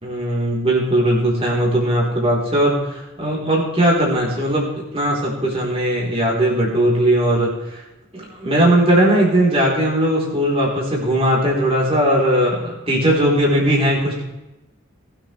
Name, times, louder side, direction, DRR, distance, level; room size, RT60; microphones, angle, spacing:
voice 1, 0.0-7.8 8.1-14.2, right 1 dB, 30° right, -4 dB, 3.8 m, -18 dB
20.5 x 8.9 x 3.3 m, 0.99 s
head